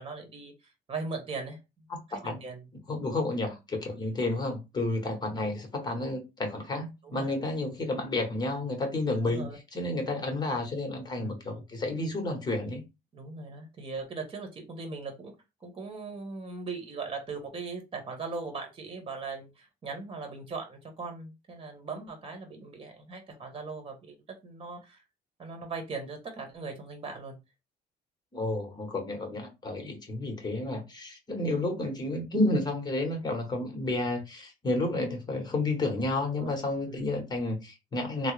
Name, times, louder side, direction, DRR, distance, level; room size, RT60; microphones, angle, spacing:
voice 1, 0.0-2.7 7.0-7.4 9.2-9.6 11.1-11.4 13.1-15.3 15.6-24.1 24.4-25.0 25.4-27.4 36.3-36.5 36.8-37.1, right 4 dB, 30° right, 1.1 m, -39 dB
voice 2, 2.9-9.4 9.7-12.8 28.3-38.3, left 2 dB, 25° left, 1.1 m, -31 dB
3.6 x 2.0 x 3.2 m
cardioid pair, 110°, 17 cm